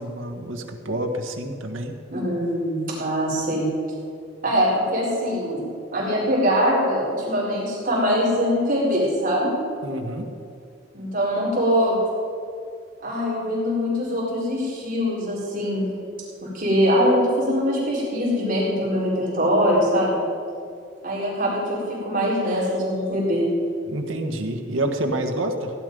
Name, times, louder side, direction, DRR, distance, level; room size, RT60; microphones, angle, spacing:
voice 1, 0.0-1.9 9.8-10.3 22.5-22.6 23.9-25.7, right 1 dB, 85° right, 4 dB, 1.4 m, -28 dB
voice 2, 2.1-3.7 4.4-5.6 5.9-9.5 10.9-12.0 13.0-15.9 16.4-20.2 21.0-23.5, equal, 45° right, -6 dB, 4.1 m, -22 dB
16.0 x 10.5 x 5.4 m, 2.4 s
head